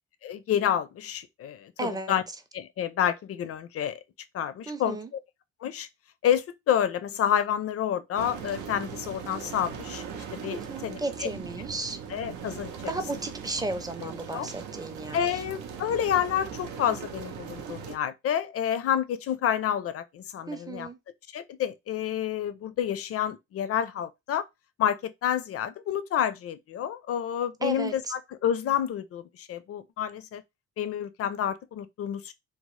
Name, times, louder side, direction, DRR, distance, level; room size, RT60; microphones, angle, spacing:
voice 1, 0.2-2.2 2.5-4.0 4.3-5.2 5.6-5.9 6.2-10.0 10.3-11.3 12.1-12.9 14.0-14.5 15.1-20.9 21.3-24.5 24.8-30.4 30.8-32.3, left 9 dB, 50° left, 0.4 m, -29 dB
voice 2, 1.8-2.1 4.7-5.1 10.5-12.0 12.9-15.4 20.5-21.0 27.6-27.9, right 2 dB, 15° right, 0.4 m, -34 dB
sound 1, 8.1-18.0, right 7 dB, 90° right, 0.6 m, -40 dB
2.9 x 2.0 x 3.0 m
cardioid pair, 90°, 30 cm